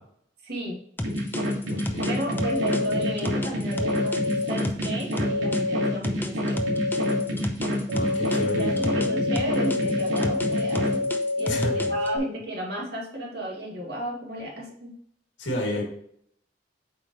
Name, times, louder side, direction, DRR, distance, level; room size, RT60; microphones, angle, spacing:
voice 1, 0.4-0.8 2.0-6.7 8.2-15.0, right 1 dB, 60° right, -2 dB, 2.2 m, -33 dB
sound 1, 1.0-5.6 6.0-9.1 9.3-12.1, left 1 dB, 10° left, 0.7 m, -32 dB
sound 2, 1.0-11.0, equal, 90° right, 2.4 m, -28 dB
voice 2, 1.7-2.1 7.9-8.9 11.5-11.9 15.4-15.8, left 1 dB, 65° left, -1 dB, 2.5 m, -30 dB
sound 3, 2.3-3.1 3.7-4.5 5.2-5.9 6.5-7.2 7.9-12.2, left 2 dB, 40° right, 1.2 m, -27 dB
8.0 x 4.9 x 3.1 m, 0.67 s
head